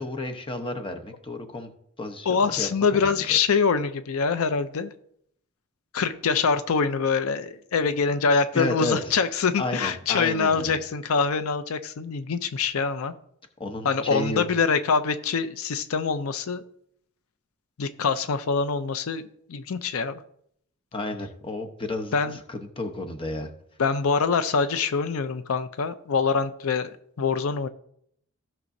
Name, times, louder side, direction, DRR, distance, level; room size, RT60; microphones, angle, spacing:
voice 1, 0.0-1.7 2.0-3.4 8.5-9.0 9.6-10.8 13.6-14.4 20.9-23.5, left 2 dB, 25° left, 4 dB, 0.9 m, -32 dB
voice 2, 2.3-4.9 5.9-13.1 13.8-16.6 17.8-19.2 19.5-20.2 22.1-22.4 23.8-27.7, left 5 dB, 80° left, 11 dB, 0.5 m, -24 dB
15.5 x 6.0 x 2.7 m, 0.69 s
head